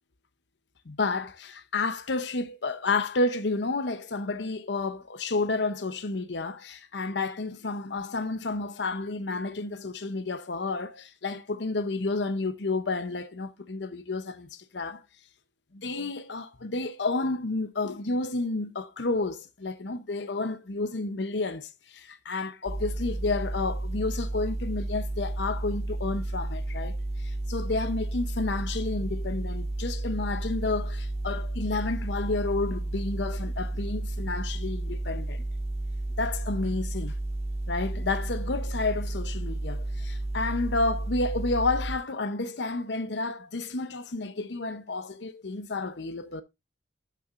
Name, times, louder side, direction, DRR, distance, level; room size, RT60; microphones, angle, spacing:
voice 1, 0.9-15.0 15.7-35.4 36.2-37.1 37.7-46.4, left 3 dB, 75° left, 0.8 m, -31 dB
sound 1, 22.7-42.0, right 2 dB, 35° right, 0.6 m, -32 dB
12.5 x 5.8 x 2.5 m
head